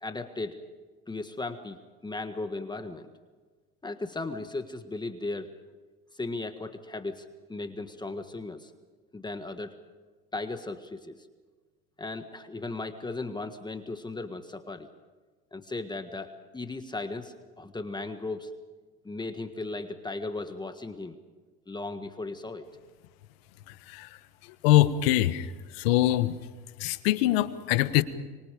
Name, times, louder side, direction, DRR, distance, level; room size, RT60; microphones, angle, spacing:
voice 1, 0.0-0.6 1.1-3.1 3.8-5.5 6.1-8.7 9.1-9.7 10.3-11.2 12.0-14.9 15.5-18.5 19.0-21.2 21.7-22.7, left 2 dB, 15° left, 7 dB, 1.6 m, -36 dB
voice 2, 24.6-25.5 25.8-26.3 26.8-28.0, left 15 dB, 80° left, 13 dB, 1.4 m, -23 dB
25.5 x 24.5 x 5.2 m, 1.4 s
supercardioid pair, 90°, 30 cm